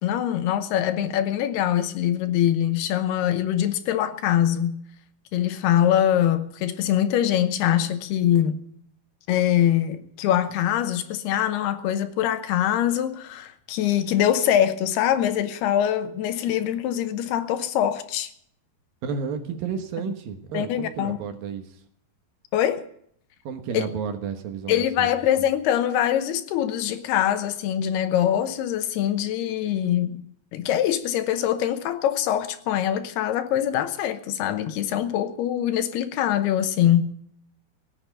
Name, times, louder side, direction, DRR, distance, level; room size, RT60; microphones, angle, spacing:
voice 1, 0.0-4.9 5.3-8.6 9.3-18.3 20.5-21.2 22.5-22.9 23.7-23.8 24.7-30.2 30.5-37.0, left 11 dB, 85° left, 3.0 m, -23 dB
voice 2, 19.0-21.7 23.4-25.1, right 6 dB, 70° right, 2.8 m, -32 dB
17.0 x 8.6 x 9.1 m
omnidirectional pair, 4.6 m